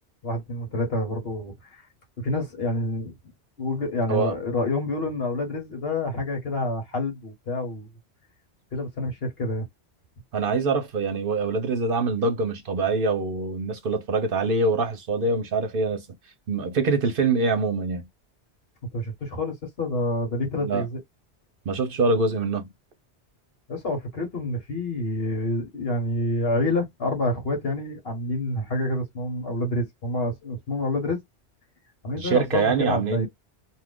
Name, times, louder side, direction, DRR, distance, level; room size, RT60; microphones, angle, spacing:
voice 1, 0.2-1.8 2.2-3.1 3.6-7.9 8.7-9.7 18.9-21.0 23.7-31.2 32.0-33.3, left 2 dB, 60° left, 1.4 m, -28 dB
voice 2, 10.3-16.1 16.5-18.1 20.6-20.8 21.7-22.7 32.2-33.3, right 3 dB, 60° right, 0.8 m, -24 dB
2.6 x 2.4 x 3.5 m
omnidirectional pair, 1.1 m